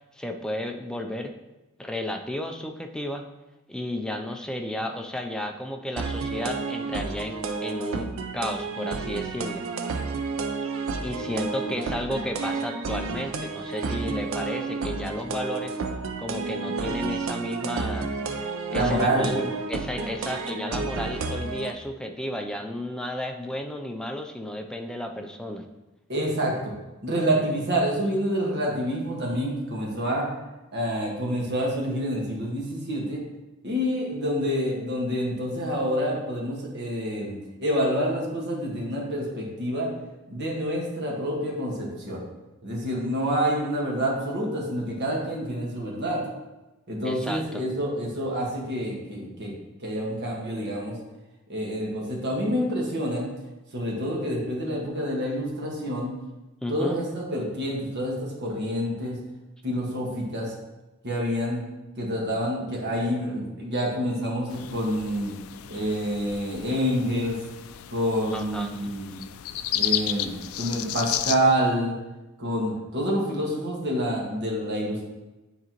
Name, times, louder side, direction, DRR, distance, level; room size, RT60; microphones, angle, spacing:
voice 1, 0.1-1.3 1.8-3.3 3.7-9.6 11.0-15.8 16.2-18.1 18.7-25.7 47.0-47.7 56.6-57.0 68.3-68.9, left 1 dB, 5° left, 3 dB, 0.4 m, -33 dB
sound 1, 6.0-21.7, right 4 dB, 70° right, 0.5 m, -31 dB
voice 2, 18.7-19.4 26.1-26.7 27.0-30.3 30.7-33.2 33.6-39.9 40.3-42.2 42.6-46.2 46.9-49.5 49.8-50.9 51.5-53.3 53.7-56.1 56.7-59.1 59.6-60.5 61.0-61.6 62.0-65.3 65.7-67.4 67.9-69.2 69.7-71.9 72.4-75.1, equal, 55° right, -2 dB, 1.5 m, -27 dB
sound 2, 64.5-71.3, left 12 dB, 85° left, 0.3 m, -33 dB
9.2 x 3.9 x 3.0 m, 1.1 s
head